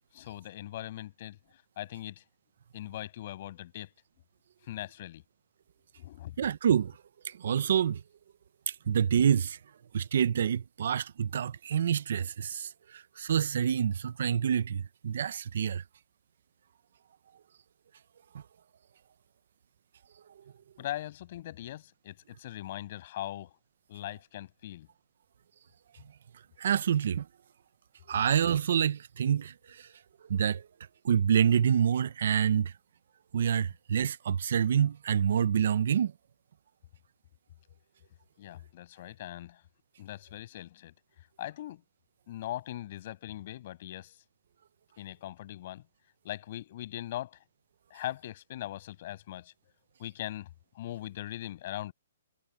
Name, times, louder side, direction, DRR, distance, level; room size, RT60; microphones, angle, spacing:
voice 1, 0.1-1.4 1.8-2.2 2.7-3.9 4.6-5.2 6.0-6.4 20.8-23.5 23.9-24.9 38.4-39.6 40.0-40.9 41.4-41.8 42.3-44.2 45.0-45.8 46.2-47.4 47.9-49.5 50.0-50.5 50.8-51.9, left 13 dB, 45° left, 7.0 m, -40 dB
voice 2, 6.4-7.0 7.2-8.0 8.7-9.6 9.9-15.8 18.3-18.4 26.6-27.3 28.1-29.9 30.3-30.7 31.0-32.7 33.3-36.1, right 8 dB, 65° right, 0.7 m, -27 dB
hypercardioid pair, 160°, 0 cm